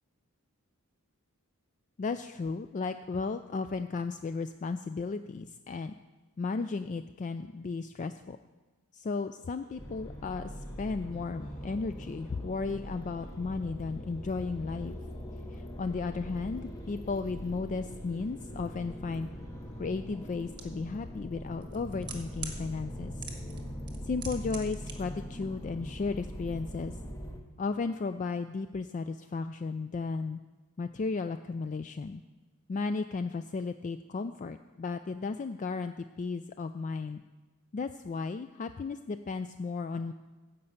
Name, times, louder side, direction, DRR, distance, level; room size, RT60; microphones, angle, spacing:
voice 1, 2.0-5.9 6.4-8.4 8.9-15.0 15.5-19.3 19.8-23.2 24.0-27.0 27.6-30.4 30.8-32.2 32.7-37.2 37.7-40.1, left 4 dB, 35° left, 10 dB, 0.3 m, -34 dB
sound 1, 9.3-21.0, right 1 dB, 60° left, 3.4 m, -60 dB
sound 2, 9.8-27.4, equal, 15° left, 1.1 m, -42 dB
sound 3, 20.6-20.7 21.6-22.6 23.2-23.6 23.9-24.9 25.2-25.3, right 5 dB, 20° right, 1.4 m, -41 dB
14.5 x 5.3 x 8.1 m, 1.2 s
head